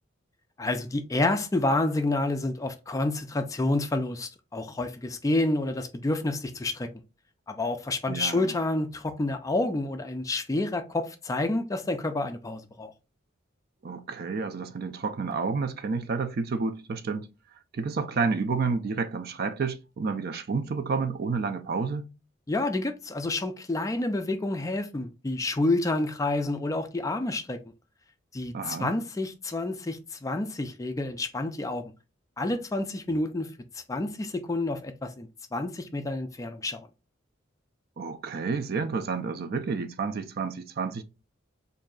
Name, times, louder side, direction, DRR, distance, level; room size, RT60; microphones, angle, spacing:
voice 1, 0.6-6.9 7.5-12.9 22.5-27.6 28.3-31.9 32.4-36.8, left 2 dB, 15° left, 0.3 m, -29 dB
voice 2, 8.1-8.5 13.8-17.3 17.7-22.1 28.5-28.9 38.0-41.0, right 4 dB, 50° right, 0.4 m, -30 dB
3.1 x 2.6 x 3.7 m
head